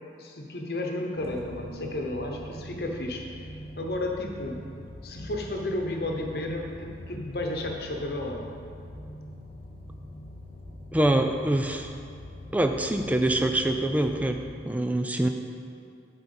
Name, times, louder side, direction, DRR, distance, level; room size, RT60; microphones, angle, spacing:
voice 1, 0.2-3.2 3.8-4.6 5.0-8.5, left 1 dB, 55° left, 1 dB, 1.0 m, -32 dB
sound 1, 1.1-14.5, left 1 dB, 35° left, 0.8 m, -43 dB
voice 2, 10.9-11.9 12.5-15.3, right 1 dB, 10° right, 5 dB, 0.3 m, -25 dB
7.8 x 4.4 x 7.0 m, 2.4 s
head